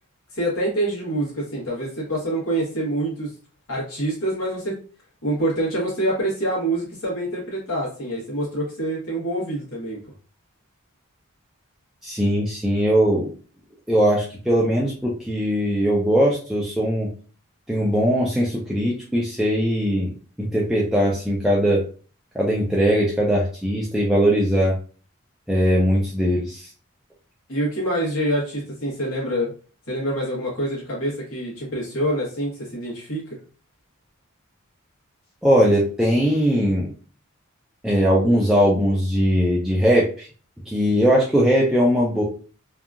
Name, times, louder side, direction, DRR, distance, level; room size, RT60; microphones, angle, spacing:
voice 1, 0.3-3.3 3.7-4.7 5.2-10.0 27.5-29.5 29.9-33.2, right 1 dB, 80° left, -6 dB, 1.1 m, -26 dB
voice 2, 12.0-13.3 13.9-17.1 17.7-20.1 20.4-21.8 22.3-24.8 25.5-26.7 35.4-36.9 37.8-40.3 40.7-42.2, equal, ahead, -5 dB, 0.3 m, -20 dB
2.7 x 2.3 x 2.4 m, 0.39 s
head